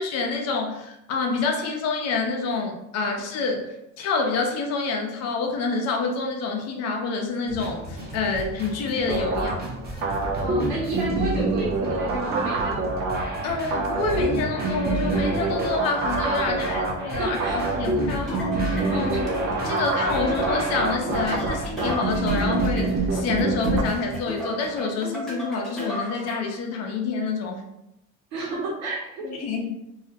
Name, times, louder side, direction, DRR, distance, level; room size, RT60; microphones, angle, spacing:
voice 1, 0.0-9.6 13.4-19.3 19.6-27.6 29.2-29.8, left 4 dB, 60° left, 2 dB, 0.6 m, -27 dB
sound 1, 7.5-24.7, right 1 dB, 30° right, 0.8 m, -35 dB
sound 2, 9.1-23.8, right 2 dB, 50° right, 0.4 m, -26 dB
voice 2, 10.3-13.1 16.7-16.8 17.2-17.6 18.9-19.0 28.3-29.3, right 3 dB, 80° right, -6 dB, 0.9 m, -31 dB
sound 3, 18.3-26.6, equal, ahead, 0.8 m, -35 dB
2.3 x 2.0 x 2.7 m, 0.85 s
cardioid pair, 110°, 29 cm